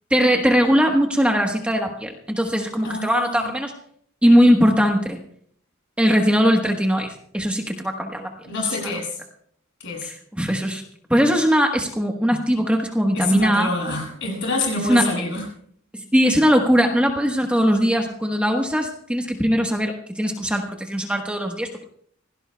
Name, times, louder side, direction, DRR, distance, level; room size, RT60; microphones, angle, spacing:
voice 1, 0.1-3.7 4.2-5.2 6.0-8.3 8.8-9.0 10.0-10.8 11.1-13.7 14.9-15.0 15.9-21.8, equal, 5° right, 2 dB, 1.2 m, -20 dB
voice 2, 2.8-3.5 8.5-9.1 9.8-10.1 13.1-15.4, left 2 dB, 60° left, -1 dB, 7.8 m, -26 dB
26.5 x 17.0 x 2.3 m, 0.63 s
head